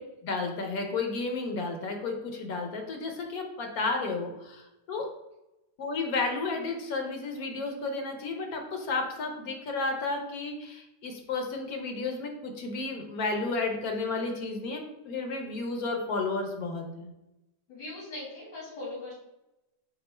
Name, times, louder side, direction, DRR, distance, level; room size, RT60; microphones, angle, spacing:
voice 1, 0.2-5.1 5.8-17.1, left 3 dB, 65° left, 3 dB, 1.1 m, -32 dB
voice 2, 17.7-19.1, left 2 dB, 85° left, -6 dB, 2.0 m, -40 dB
4.4 x 2.4 x 4.3 m, 0.94 s
omnidirectional pair, 1.8 m